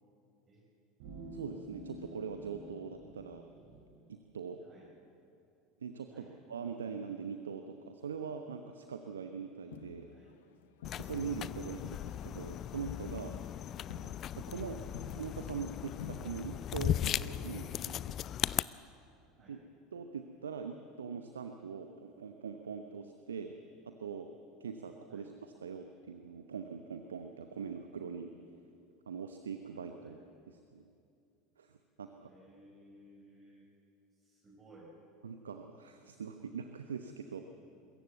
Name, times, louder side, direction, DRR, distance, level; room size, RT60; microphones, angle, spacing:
sound 1, 1.0-3.8, right 1 dB, 60° right, 3.4 m, -49 dB
voice 1, 1.3-3.4 4.1-4.6 5.8-10.1 11.0-13.4 14.4-14.8 15.1-18.0 19.5-19.6 19.9-23.6 23.8-24.3 24.6-28.3 29.1-30.2 30.5-30.8 31.6-31.7 32.0-32.3 35.2-37.5, right 6 dB, 75° right, 7 dB, 0.9 m, -42 dB
Crowd, 9.7-11.5 11.8-16.8 17.0-17.7 18.1-18.2, left 9 dB, 65° left, 1.0 m, -49 dB
sound 2, 10.8-18.6, left 11 dB, 40° left, 0.4 m, -37 dB
voice 2, 32.1-33.7 34.2-34.9, right 1 dB, 30° right, -3 dB, 5.1 m, -59 dB
23.0 x 14.5 x 8.2 m, 2.6 s
figure-of-eight pair, 75°, 0 cm